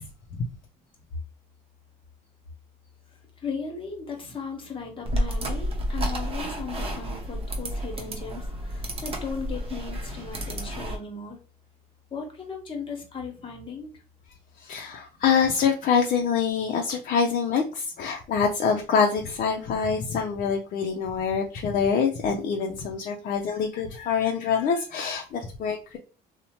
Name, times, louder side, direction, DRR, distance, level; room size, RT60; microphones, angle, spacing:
voice 1, 3.4-8.4 8.7-11.4 12.1-13.9, left 5 dB, 30° left, 2 dB, 1.0 m, -36 dB
sound 1, 5.0-11.0, equal, 35° right, 0.8 m, -31 dB
voice 2, 14.6-26.0, left 6 dB, 55° left, 2 dB, 0.5 m, -25 dB
2.7 x 2.1 x 2.9 m, 0.35 s
cardioid pair, 110°, 17 cm